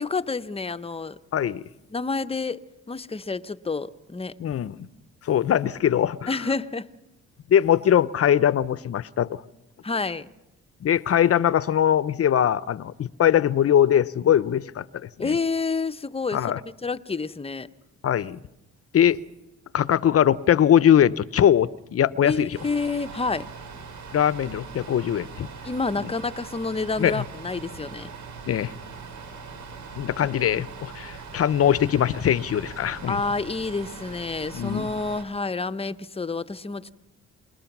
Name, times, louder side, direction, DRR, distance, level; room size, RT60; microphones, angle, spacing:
voice 1, 0.0-1.2 1.9-4.3 6.3-6.9 9.8-10.3 15.2-17.7 22.2-23.5 25.6-28.1 30.2-30.3 33.1-36.9, left 4 dB, 20° left, 0.8 m, -29 dB
voice 2, 1.3-1.6 4.4-4.8 5.2-6.3 7.5-9.4 10.8-15.3 16.3-16.6 18.0-18.4 18.9-19.2 19.7-22.5 24.1-25.5 26.0-26.1 27.0-27.2 28.5-28.7 30.0-33.2 34.5-34.9, left 10 dB, 50° left, 0.8 m, -21 dB
sound 1, 22.5-35.2, right 5 dB, 70° right, 4.7 m, -41 dB
28.0 x 20.5 x 6.1 m
cardioid pair, 90°, 30 cm